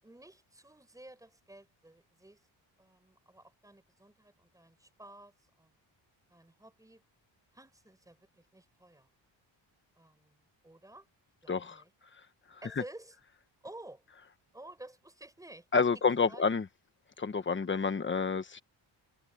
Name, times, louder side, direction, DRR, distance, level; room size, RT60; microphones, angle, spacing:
voice 1, 0.0-2.4 2.8-5.7 6.3-7.0 7.5-9.1 10.0-11.1 11.4-11.9 12.6-13.2 13.6-14.0 14.5-15.7 16.2-16.4, right 1 dB, 5° right, 4.9 m, -52 dB
voice 2, 11.5-11.8 15.7-16.6 17.2-18.6, left 5 dB, 25° left, 1.2 m, -29 dB
wide cardioid pair, 175°, 46 cm